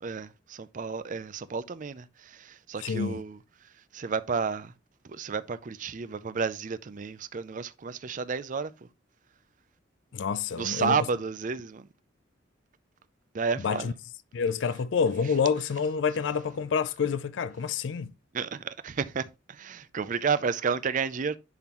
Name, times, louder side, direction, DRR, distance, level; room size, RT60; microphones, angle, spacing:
voice 1, 0.0-3.4 3.9-4.7 5.1-8.7 10.6-11.9 13.3-13.9 18.3-21.4, right 5 dB, 40° right, 0.4 m, -31 dB
voice 2, 2.8-3.2 10.1-10.9 13.6-13.9 14.3-18.1, left 6 dB, 65° left, 0.4 m, -28 dB
10.5 x 3.8 x 2.9 m
head